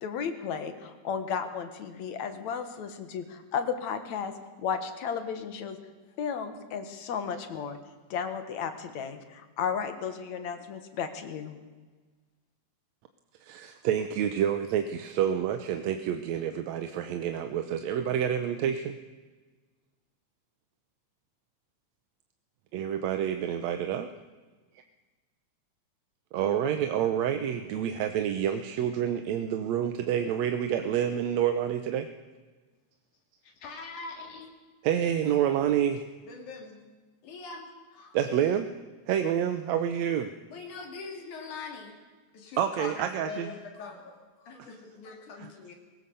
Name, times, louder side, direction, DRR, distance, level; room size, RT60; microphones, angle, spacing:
voice 1, 0.0-5.8 6.2-7.8 8.1-11.6, left 7 dB, 70° left, 9 dB, 2.7 m, -34 dB
voice 2, 13.4-19.0 22.7-24.1 26.3-32.1 34.8-36.0 38.1-38.7 39.1-40.3 42.6-43.5 44.6-44.7 45.4-45.5, right 9 dB, 75° right, 8 dB, 2.0 m, -28 dB
voice 3, 33.4-34.5 36.3-36.8 37.2-37.7 37.9-38.2 40.5-42.0 42.3-45.8, left 4 dB, 90° left, 2 dB, 4.1 m, -42 dB
21.0 x 18.5 x 6.9 m, 1.3 s
omnidirectional pair, 3.4 m